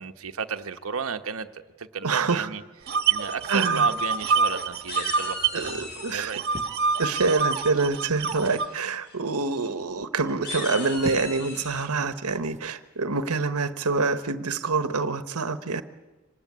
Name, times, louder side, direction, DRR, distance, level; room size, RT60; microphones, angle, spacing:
voice 1, 0.0-6.4, right 6 dB, 70° right, 7 dB, 1.1 m, -34 dB
voice 2, 2.0-2.5 3.5-3.9 5.5-6.3 7.0-15.8, right 4 dB, 90° right, 10 dB, 1.2 m, -26 dB
sound 1, 2.9-5.7 6.0-8.7, right 5 dB, 50° right, 1.7 m, -26 dB
sound 2, 3.9-4.5 4.9-6.3 7.7-8.1 8.5-8.8 9.0-9.1 9.5-9.7 10.3-11.9, left 3 dB, 50° left, 3.9 m, -38 dB
sound 3, 6.5-7.6 8.3-8.7 10.6-11.5 12.5-12.8, right 2 dB, 30° right, 0.8 m, -40 dB
25.0 x 18.5 x 9.5 m, 1.1 s
head